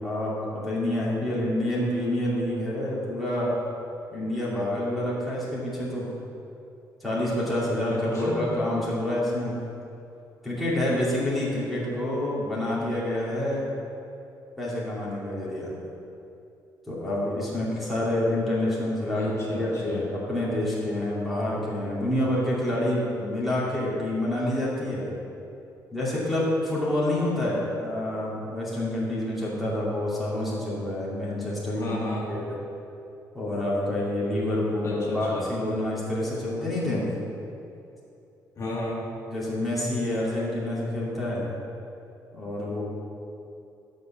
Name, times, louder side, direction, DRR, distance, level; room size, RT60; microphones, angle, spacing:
voice 1, 0.0-3.5 4.1-6.1 7.0-9.5 10.4-13.7 14.6-15.7 16.9-25.1 25.9-31.9 32.3-32.5 33.3-37.1 39.3-41.4 42.3-42.8, left 1 dB, ahead, -8 dB, 2.6 m, -27 dB
voice 2, 7.9-8.5 19.1-20.1 31.7-32.3 34.8-35.5 38.6-39.0, left 2 dB, 45° left, -5 dB, 2.1 m, -33 dB
11.5 x 5.3 x 7.3 m, 2.7 s
cardioid pair, 175°, 7 cm